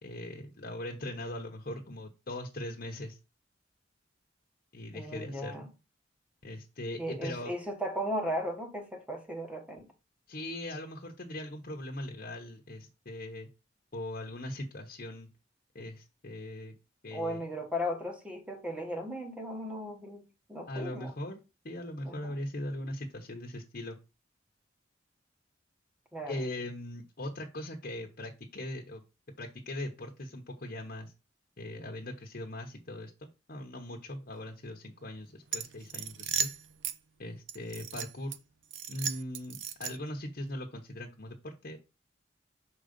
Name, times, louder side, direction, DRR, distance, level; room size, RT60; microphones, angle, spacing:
voice 1, 0.0-3.2 4.7-5.6 6.4-7.5 10.3-13.5 13.9-15.3 15.7-16.7 17.0-17.4 20.7-24.0 26.3-29.0 29.4-31.1 31.6-36.5 37.2-38.4 38.9-41.8, left 1 dB, 50° left, 1.0 m, -40 dB
voice 2, 4.9-5.7 7.0-9.9 17.1-21.1 22.0-22.4 26.1-26.4, equal, 5° right, 1.4 m, -36 dB
sound 1, 35.5-37.0 37.5-38.4 38.7-40.2, right 8 dB, 80° right, 0.7 m, -36 dB
6.0 x 3.9 x 5.2 m
head